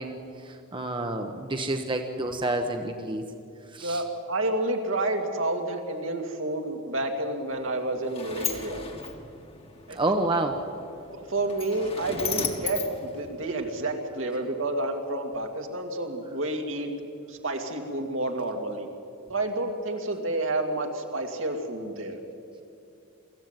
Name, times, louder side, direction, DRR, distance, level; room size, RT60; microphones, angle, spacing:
voice 1, 0.0-3.2 3.7-4.0 9.9-10.6, right 2 dB, 25° right, 4 dB, 1.0 m, -29 dB
voice 2, 3.8-8.8 9.9-10.0 11.1-16.9 17.3-18.9 19.3-22.2, right 2 dB, 70° right, 3 dB, 2.3 m, -29 dB
Sliding door, 7.5-13.9, left 6 dB, 30° left, 1.6 m, -37 dB
23.5 x 14.5 x 9.0 m, 2.6 s
head